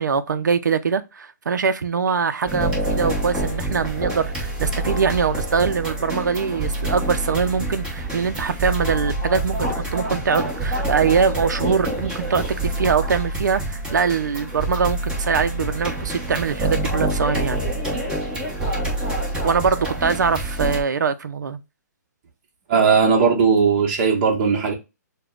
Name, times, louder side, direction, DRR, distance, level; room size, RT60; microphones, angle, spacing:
voice 1, 0.0-17.6 19.4-21.6, right 6 dB, 85° right, 0.5 m, -23 dB
sound 1, 2.5-20.8, right 1 dB, 10° right, 1.1 m, -26 dB
voice 2, 22.7-24.7, right 6 dB, 30° right, 1.1 m, -17 dB
6.6 x 2.2 x 2.4 m
hypercardioid pair, 155°, 10 cm